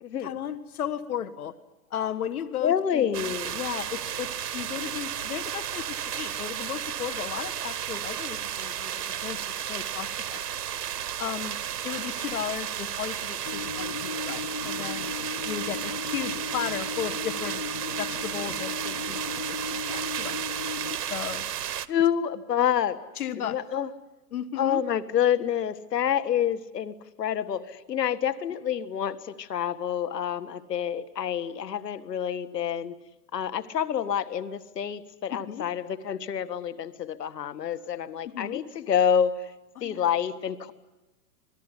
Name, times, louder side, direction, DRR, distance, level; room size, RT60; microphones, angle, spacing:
voice 1, 0.2-1.5 1.9-10.4 11.2-11.6 11.8-15.1 15.4-20.3 21.1-21.4 23.2-23.6 24.3-24.8 35.3-35.6 38.3-38.6 39.8-40.0, left 9 dB, 65° left, 12 dB, 1.6 m, -35 dB
voice 2, 2.6-3.6 21.9-23.0 23.4-23.9 24.6-32.9 33.3-39.5 39.8-40.7, left 9 dB, 85° left, 12 dB, 1.8 m, -28 dB
sound 1, 3.1-21.9, right 10 dB, 80° right, 1.4 m, -33 dB
sound 2, 13.4-21.0, left 5 dB, 30° left, 0.8 m, -37 dB
27.0 x 20.0 x 9.9 m, 1.1 s
hypercardioid pair, 175°, 48 cm